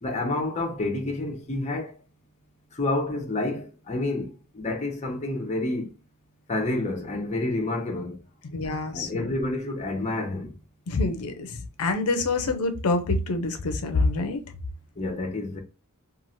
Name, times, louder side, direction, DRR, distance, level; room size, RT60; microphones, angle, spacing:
voice 1, 0.0-2.0 2.7-5.9 6.5-8.2 8.9-10.5 15.0-15.6, left 2 dB, 30° left, 0.6 m, -29 dB
voice 2, 8.5-9.2 10.9-14.4, left 3 dB, 85° left, 0.5 m, -26 dB
3.0 x 2.4 x 2.5 m
head